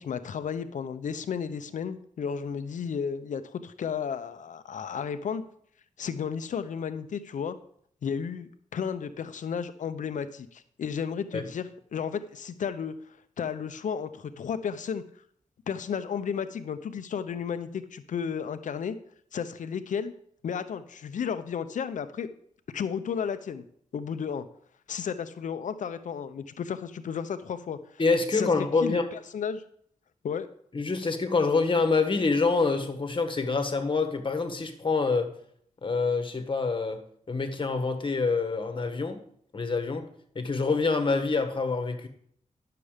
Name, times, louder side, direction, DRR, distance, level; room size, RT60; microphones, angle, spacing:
voice 1, 0.0-5.4 6.0-7.6 8.0-12.9 13.4-15.0 15.7-19.0 19.3-20.1 20.4-22.3 22.7-23.6 23.9-24.5 24.9-27.8 28.3-28.5 28.8-29.6 30.2-30.5, left 7 dB, 80° left, 11 dB, 0.7 m, -33 dB
voice 2, 28.0-29.0 30.7-35.3 35.8-37.0 37.3-39.2 39.5-40.1 40.3-42.1, left 4 dB, 40° left, 7 dB, 1.5 m, -26 dB
11.0 x 6.8 x 5.0 m, 0.64 s
cardioid pair, 75°, 13 cm